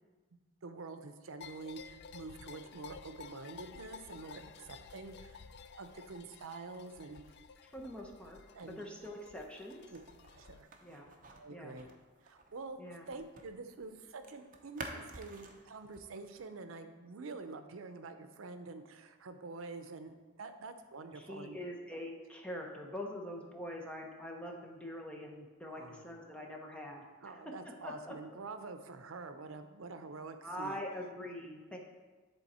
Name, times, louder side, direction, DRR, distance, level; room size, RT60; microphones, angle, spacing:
voice 1, 0.6-5.4 5.8-7.2 8.5-8.8 9.9-10.0 10.3-10.7 11.3-11.9 12.2-12.8 13.1-21.6 25.7-26.1 27.2-30.8, right 3 dB, 85° right, 8 dB, 0.6 m, -47 dB
sound 1, 1.4-10.6, left 6 dB, 55° left, 0.3 m, -53 dB
voice 2, 7.6-8.4 8.7-9.8 10.8-11.1 11.5-11.8 12.8-13.1 21.1-27.0 27.6-28.2 30.4-31.8, left 1 dB, 5° left, 0 dB, 0.9 m, -44 dB
sound 2, 9.0-13.5 13.8-16.5, right 2 dB, 40° right, 0.7 m, -51 dB
10.0 x 3.9 x 4.2 m, 1.3 s
head